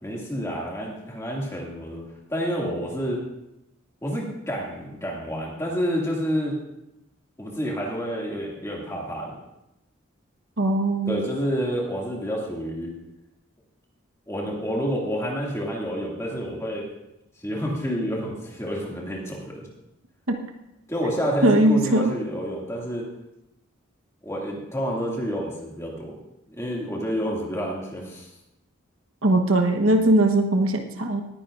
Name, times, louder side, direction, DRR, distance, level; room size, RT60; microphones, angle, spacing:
voice 1, 0.0-2.0 2.3-3.2 4.0-6.6 7.4-9.4 11.1-12.9 14.3-16.9 17.4-19.6 20.9-23.1 24.2-26.1 26.6-28.3, equal, 15° left, -3 dB, 2.2 m, -29 dB
voice 2, 10.6-11.2 20.3-20.4 21.4-22.1 29.2-31.2, right 1 dB, 85° right, 4 dB, 1.1 m, -20 dB
18.5 x 10.0 x 2.5 m, 0.88 s
head